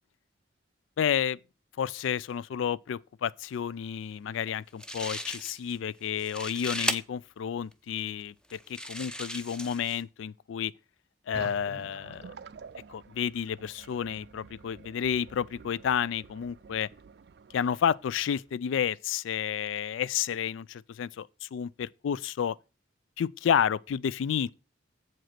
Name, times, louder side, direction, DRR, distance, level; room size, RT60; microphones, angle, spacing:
voice 1, 1.0-1.4 1.8-8.6 8.8-10.7 11.3-12.3 12.9-16.9 17.5-22.6 23.2-24.5, left 8 dB, 80° left, 0.3 m, -30 dB
sound 1, 4.5-4.6 4.8-5.8 6.1-7.0 7.7-7.8 8.5-10.0, equal, 5° left, 0.5 m, -35 dB
sound 2, 11.3-18.5, right 5 dB, 55° right, 0.3 m, -49 dB
7.7 x 5.1 x 5.8 m
head